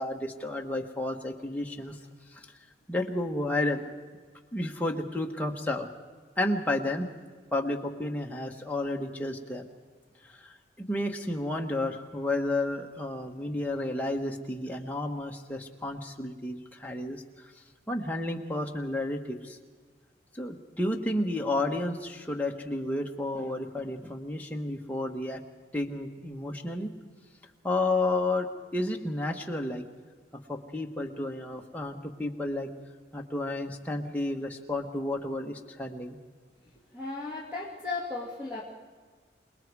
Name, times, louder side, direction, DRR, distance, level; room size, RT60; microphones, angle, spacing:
voice 1, 0.0-2.0 2.3-2.5 2.9-3.8 4.5-5.9 6.4-7.1 7.5-9.7 10.2-19.6 20.3-25.4 25.7-26.9 27.6-29.8 30.5-32.7 33.1-36.2, left 2 dB, 10° left, 1 dB, 1.3 m, -31 dB
voice 2, 36.9-38.6, left 3 dB, 10° right, -5 dB, 2.3 m, -35 dB
27.5 x 19.5 x 4.8 m, 1.5 s
head